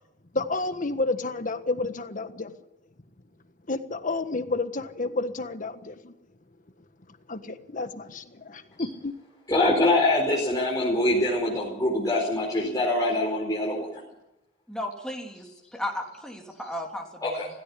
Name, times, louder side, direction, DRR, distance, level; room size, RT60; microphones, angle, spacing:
voice 1, 0.3-2.5 3.7-6.1 7.3-9.1, left 3 dB, 45° left, 9 dB, 1.4 m, -30 dB
voice 2, 9.5-14.0 17.2-17.5, left 1 dB, 20° left, -5 dB, 4.8 m, -24 dB
voice 3, 14.7-15.4 15.7-17.4, left 1 dB, 5° left, 1 dB, 3.3 m, -34 dB
17.0 x 16.5 x 10.0 m, 0.88 s
head